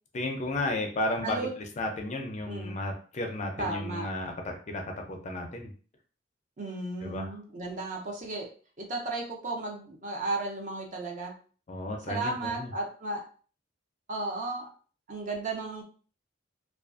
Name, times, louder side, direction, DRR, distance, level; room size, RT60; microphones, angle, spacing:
voice 1, 0.1-5.7 7.0-7.3 11.7-12.7, left 1 dB, 35° left, 3 dB, 0.4 m, -33 dB
voice 2, 1.2-1.5 2.5-2.8 3.6-4.1 6.6-8.5 8.8-11.3 12.1-13.2 14.1-14.7 15.1-15.8, right 2 dB, 40° right, 1 dB, 0.6 m, -34 dB
2.4 x 2.3 x 2.4 m, 0.41 s
head